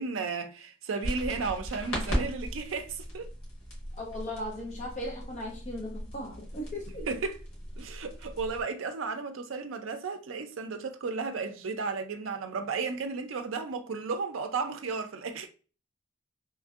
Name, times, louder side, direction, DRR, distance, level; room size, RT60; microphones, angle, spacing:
voice 1, 0.0-3.3 7.1-7.4 7.8-15.5, right 4 dB, 70° right, 0.4 m, -34 dB
sound 1, 1.0-8.6, equal, 85° left, 1.5 m, -37 dB
voice 2, 4.0-7.1, left 1 dB, 35° left, 0.6 m, -37 dB
3.1 x 2.6 x 2.3 m
head